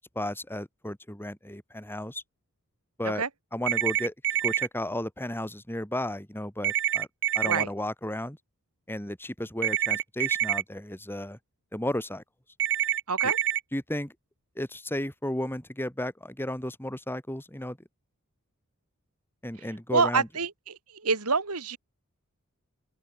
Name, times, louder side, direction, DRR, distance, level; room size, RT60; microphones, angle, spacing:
voice 1, 0.1-2.2 3.0-3.2 3.5-4.1 4.4-7.1 7.3-8.4 8.9-11.4 11.7-12.2 13.2-13.3 13.7-14.1 14.6-17.8 19.4-20.3, left 1 dB, 10° left, 5.9 m, -33 dB
sound 1, 3.7-4.7 6.6-7.6 9.6-10.6 12.6-13.6, right 11 dB, 60° right, 6.2 m, -26 dB
voice 2, 19.9-21.8, right 4 dB, 80° right, 2.9 m, -27 dB
open air
head